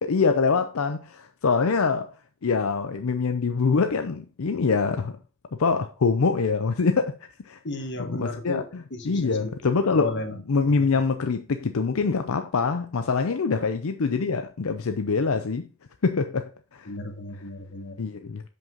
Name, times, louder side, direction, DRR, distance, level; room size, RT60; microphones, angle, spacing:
voice 1, 0.0-2.1 2.4-5.2 5.6-7.1 7.4-7.6 8.0-15.7 16.0-16.4 16.7-16.9 18.0-18.4, left 4 dB, 80° left, 0.6 m, -24 dB
voice 2, 7.6-9.5 10.0-10.3 16.9-18.0, left 2 dB, 55° left, 1.4 m, -33 dB
7.2 x 5.5 x 3.8 m
head